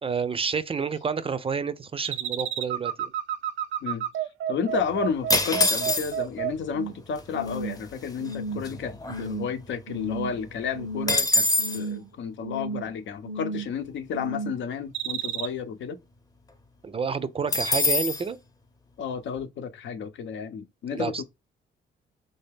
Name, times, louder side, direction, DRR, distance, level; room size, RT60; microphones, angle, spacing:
voice 1, 0.0-3.1 16.8-18.4 20.9-21.2, right 5 dB, 30° right, 0.4 m, -29 dB
sound 1, 2.0-7.0 7.3-7.8 8.2-8.7 9.1-9.5 9.9-10.4 10.7-11.3 11.6-12.1 12.4-12.9 13.2-13.8 14.1-14.6 14.9-15.5, right 7 dB, 80° right, 0.6 m, -31 dB
voice 2, 4.5-11.5 11.7-16.0 19.0-21.2, left 6 dB, 70° left, 0.8 m, -32 dB
sound 2, 5.3-6.4 7.2-7.3 7.5-7.8 8.2-9.7 10.1-10.2 10.4-11.8 17.5-18.2, left 2 dB, 20° left, 0.7 m, -25 dB
3.3 x 2.8 x 3.4 m
cardioid pair, 90°, 20 cm